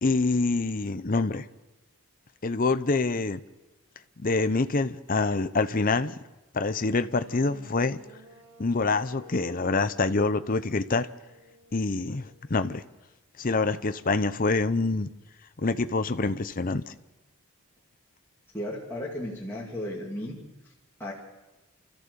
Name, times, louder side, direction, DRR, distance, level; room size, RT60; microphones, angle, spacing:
voice 1, 0.0-1.5 2.4-3.4 4.2-6.1 6.5-8.0 8.6-11.1 11.7-12.8 13.4-15.1 15.6-16.9, left 3 dB, 40° left, 11 dB, 0.7 m, -26 dB
sound 1, 7.1-13.0, left 1 dB, 80° right, 4.3 m, -52 dB
voice 2, 18.5-20.4 21.0-21.1, left 1 dB, 10° left, -5 dB, 2.5 m, -34 dB
30.0 x 14.0 x 6.9 m, 1.1 s
head